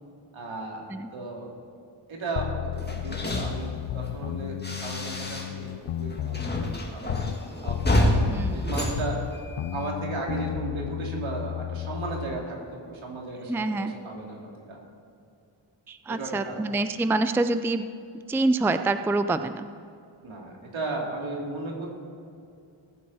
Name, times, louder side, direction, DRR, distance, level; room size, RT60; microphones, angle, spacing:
voice 1, 0.3-1.5 2.1-3.7 3.9-7.1 7.6-9.1 9.7-14.8 16.1-16.6 20.2-21.9, right 3 dB, 75° right, -1 dB, 3.1 m, -35 dB
sound 1, 2.4-7.4 7.7-12.5, left 13 dB, 75° left, 0.6 m, -33 dB
sound 2, 2.8-5.7 6.0-9.9, left 1 dB, 20° left, 1.9 m, -29 dB
voice 2, 8.3-8.8 13.5-13.9 15.9-17.9 18.3-19.7, right 2 dB, 5° right, 10 dB, 0.4 m, -26 dB
20.0 x 9.4 x 4.2 m, 2.5 s
cardioid pair, 75°, 48 cm